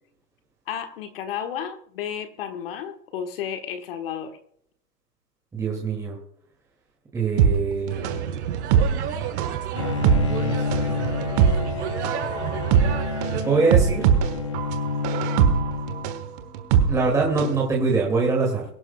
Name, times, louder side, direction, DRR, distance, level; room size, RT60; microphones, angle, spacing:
voice 1, 0.7-4.4, left 8 dB, 35° left, 7 dB, 1.5 m, -32 dB
voice 2, 5.5-6.2 7.1-8.2 9.7-9.8 10.1-11.1 12.2-12.5 13.4-14.1 16.8-18.6, right 4 dB, 5° right, -2 dB, 2.3 m, -24 dB
sound 1, 7.4-17.6 17.9-18.0, right 8 dB, 25° right, 1.3 m, -22 dB
sound 2, 7.9-13.4, right 9 dB, 45° right, 4.6 m, -31 dB
Bowed string instrument, 9.8-16.4, left 4 dB, 20° left, 0.4 m, -29 dB
23.5 x 11.0 x 2.3 m, 0.67 s
hypercardioid pair, 145°, 47 cm